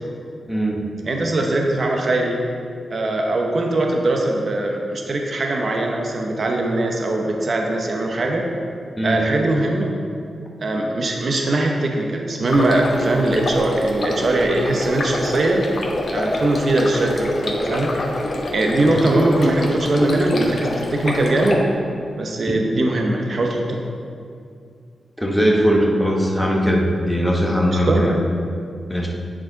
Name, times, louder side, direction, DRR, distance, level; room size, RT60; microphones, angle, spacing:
voice 1, 0.5-0.8 9.0-9.2 25.2-28.1 28.9-29.1, equal, ahead, -2 dB, 1.0 m, -19 dB
voice 2, 1.0-2.4 2.9-8.5 9.0-9.9 10.6-15.6 16.1-18.0 18.5-21.6 22.1-23.8 27.9-28.0, right 2 dB, 50° right, 1 dB, 0.7 m, -21 dB
Stream, 12.5-21.5, left 1 dB, 50° left, 1.0 m, -26 dB
8.8 x 4.7 x 3.9 m, 2.3 s
wide cardioid pair, 105°, 0 cm